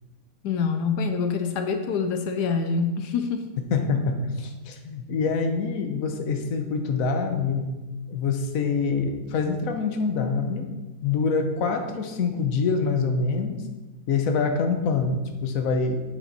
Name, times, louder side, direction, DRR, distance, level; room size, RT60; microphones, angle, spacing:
voice 1, 0.4-3.4, left 5 dB, 85° left, 7 dB, 1.3 m, -26 dB
voice 2, 3.7-7.7 8.1-10.7 11.0-13.6 14.1-16.0, left 4 dB, 60° left, 5 dB, 1.3 m, -25 dB
8.8 x 7.4 x 4.2 m, 1.2 s
omnidirectional pair, 1.7 m